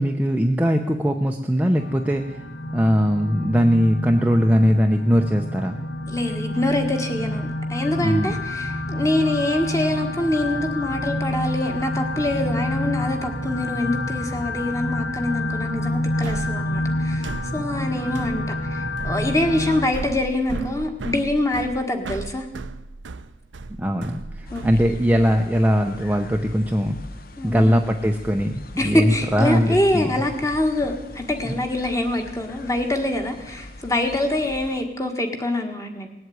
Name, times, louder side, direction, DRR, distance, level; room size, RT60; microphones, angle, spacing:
voice 1, 0.0-2.4 2.7-5.8 8.0-8.4 17.6-17.7 23.8-27.0 27.4-30.1, equal, 10° right, 3 dB, 0.7 m, -20 dB
sound 1, 1.8-19.9, left 1 dB, 80° left, 1.6 m, -28 dB
voice 2, 6.1-18.4 18.7-22.5 24.5-24.8 27.4-27.8 28.8-36.1, left 1 dB, 15° left, 5 dB, 1.7 m, -25 dB
sound 2, 16.2-25.4, right 3 dB, 75° right, 0.7 m, -36 dB
sound 3, 24.4-34.8, left 2 dB, 50° left, 1.0 m, -41 dB
19.0 x 7.9 x 9.4 m, 1.0 s
head